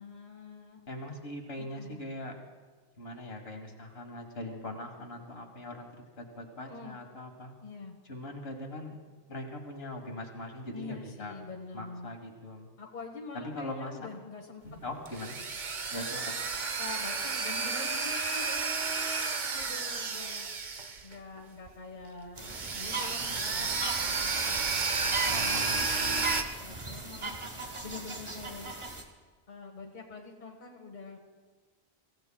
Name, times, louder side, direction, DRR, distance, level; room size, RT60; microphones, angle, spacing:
voice 1, 0.0-0.8 1.6-2.0 6.6-7.0 7.6-8.0 10.7-12.2 12.8-14.6 15.9-16.3 16.8-20.5 21.0-24.9 25.2-27.4 27.8-28.8 29.5-31.2, left 4 dB, 45° left, 1 dB, 1.4 m, -45 dB
voice 2, 0.9-2.4 3.0-7.5 8.1-9.0 9.3-11.4 11.7-12.7 13.3-13.9 14.6-15.4 15.9-16.2 23.2-23.4 25.3-26.3, left 1 dB, 65° left, 3 dB, 1.8 m, -41 dB
sound 1, 14.8-21.4 21.7-21.8 22.4-26.4, right 4 dB, 50° right, 0.9 m, -32 dB
sound 2, 22.4-29.0, right 3 dB, 30° right, 1.1 m, -39 dB
24.5 x 15.5 x 2.3 m, 1.4 s
omnidirectional pair, 1.1 m